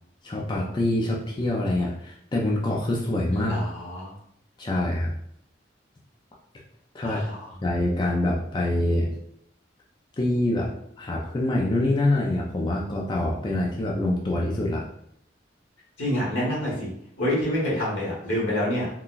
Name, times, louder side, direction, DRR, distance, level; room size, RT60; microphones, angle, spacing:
voice 1, 0.2-3.6 4.6-5.1 6.9-7.2 7.6-9.1 10.2-10.7 11.0-14.8, left 1 dB, 25° left, -2 dB, 0.3 m, -25 dB
voice 2, 3.3-4.1 7.0-7.6 16.0-18.9, left 1 dB, 80° left, -5 dB, 1.3 m, -27 dB
3.8 x 2.2 x 2.4 m, 0.73 s
head